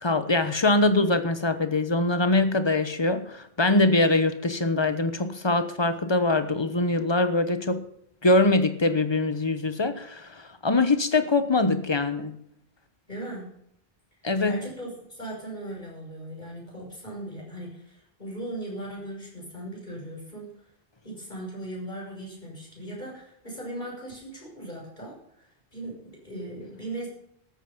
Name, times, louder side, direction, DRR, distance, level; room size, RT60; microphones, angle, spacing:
voice 1, 0.0-7.8 8.2-12.4 14.2-14.6, left 2 dB, 25° left, 1.1 m, -23 dB
voice 2, 13.1-13.5 14.4-20.6 21.0-27.1, right 1 dB, 50° left, 6.7 m, -38 dB
13.5 x 9.0 x 7.3 m
omnidirectional pair, 1.0 m